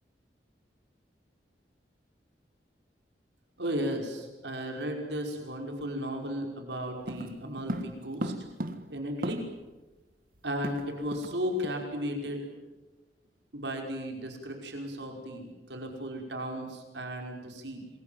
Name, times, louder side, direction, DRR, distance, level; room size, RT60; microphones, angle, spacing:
voice 1, 3.6-8.3 8.9-9.4 10.4-12.5 13.5-17.9, equal, 90° right, 3 dB, 5.5 m, -35 dB
sound 1, 7.1-9.7 10.0-10.1 10.3-11.4 11.6-11.8 12.2-12.4, right 1 dB, 55° right, 1.7 m, -37 dB
27.0 x 22.5 x 9.2 m, 1.2 s
head